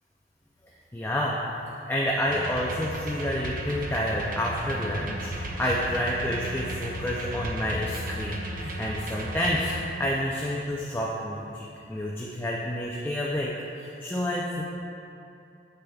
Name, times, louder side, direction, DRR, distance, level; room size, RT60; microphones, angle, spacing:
voice 1, 0.9-1.4 1.7-9.7 10.0-14.6, equal, 10° left, -4 dB, 0.4 m, -29 dB
sound 1, 2.3-9.8, right 1 dB, 50° right, 0.7 m, -35 dB
8.1 x 6.6 x 2.3 m, 2.7 s
head